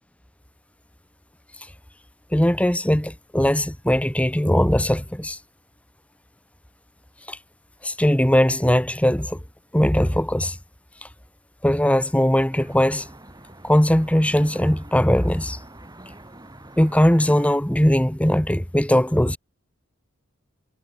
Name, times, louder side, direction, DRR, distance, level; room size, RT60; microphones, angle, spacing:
voice 1, 2.3-5.4 7.3-7.4 7.8-9.4 9.7-10.6 11.6-13.1 13.6-15.6 16.8-19.4, equal, 5° left, 1.2 m, -20 dB
Traffic noise roadway noise, 12.5-17.6, right 1 dB, 20° right, 2.8 m, -45 dB
head